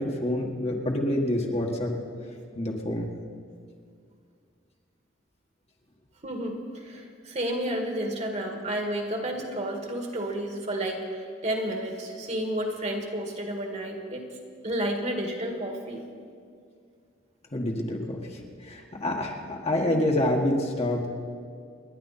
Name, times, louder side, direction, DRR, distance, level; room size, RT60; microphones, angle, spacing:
voice 1, 0.0-1.9 2.6-3.1 17.5-21.1, left 1 dB, 35° left, 0 dB, 1.7 m, -27 dB
voice 2, 6.2-14.3 14.6-16.0 19.8-20.0, right 1 dB, 35° right, 2 dB, 2.0 m, -31 dB
28.5 x 11.0 x 4.3 m, 2.2 s
head